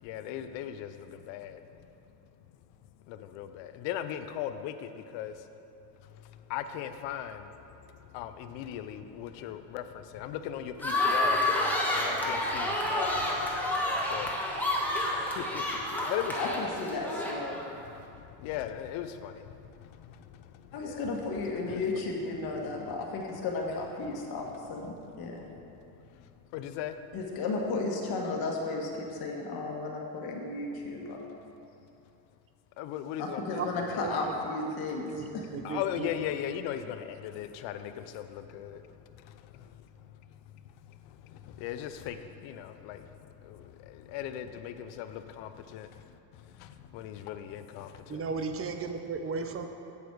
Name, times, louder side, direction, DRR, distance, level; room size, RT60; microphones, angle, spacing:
voice 1, 0.0-1.6 3.1-5.3 6.5-7.5 8.1-11.5 11.9-13.6 14.1-14.3 15.2-16.6 18.2-19.4 20.1-20.2 20.7-21.0 21.6-21.8 26.5-27.0 32.8-33.8 35.6-38.8 41.2-43.1 43.4-45.9 46.6-48.2 49.3-49.5, left 10 dB, 75° left, 9 dB, 0.7 m, -38 dB
sound 1, 10.8-17.7, left 1 dB, 5° left, 1.3 m, -29 dB
voice 2, 16.4-17.6 20.7-25.4 27.1-31.2 33.2-35.4, left 3 dB, 50° left, -1 dB, 1.5 m, -34 dB
voice 3, 34.0-34.4 35.1-36.1 48.1-49.7, right 5 dB, 30° right, 6 dB, 0.7 m, -35 dB
8.3 x 7.1 x 4.6 m, 2.7 s
cardioid pair, 115°, 45 cm